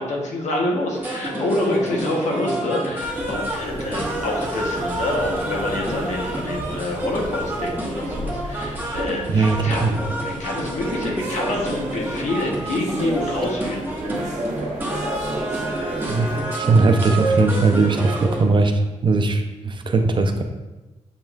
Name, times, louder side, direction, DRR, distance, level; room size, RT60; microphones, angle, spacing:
voice 1, 0.0-9.9 10.2-13.8, left 2 dB, 75° left, 0 dB, 1.0 m, -27 dB
sound 1, 0.9-18.4, right 1 dB, 15° right, 1.1 m, -28 dB
sound 2, 3.0-16.4, right 2 dB, 75° right, 0.9 m, -34 dB
voice 2, 9.3-9.9 16.1-20.4, right 3 dB, 40° right, 6 dB, 0.5 m, -19 dB
7.2 x 3.0 x 2.4 m, 1.1 s
cardioid pair, 85°, 12 cm